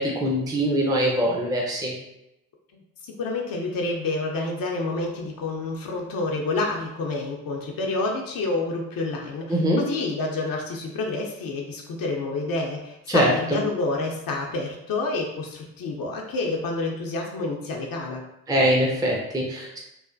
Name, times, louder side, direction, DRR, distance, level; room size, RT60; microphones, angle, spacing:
voice 1, 0.0-1.9 9.5-9.8 13.1-13.3 18.5-19.8, equal, 10° right, -2 dB, 0.6 m, -22 dB
voice 2, 2.7-18.2, left 3 dB, 60° left, 0 dB, 0.6 m, -28 dB
3.1 x 2.1 x 2.6 m, 0.85 s
hypercardioid pair, 40°, 39 cm